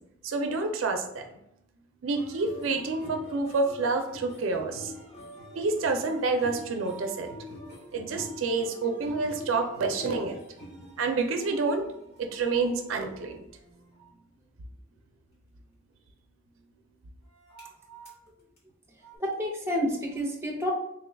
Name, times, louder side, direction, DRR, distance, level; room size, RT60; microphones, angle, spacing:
voice 1, 0.2-1.4 2.0-4.9 5.6-7.3 7.9-10.4 11.0-11.9 12.2-13.4, right 3 dB, 80° right, 5 dB, 0.4 m, -28 dB
sound 1, 2.1-14.1 17.3-18.2 18.6-18.7 19.0-19.2, equal, 50° left, 1.4 m, -45 dB
voice 2, 19.1-20.8, equal, 15° right, -1 dB, 0.7 m, -29 dB
3.5 x 2.2 x 3.4 m, 0.78 s
head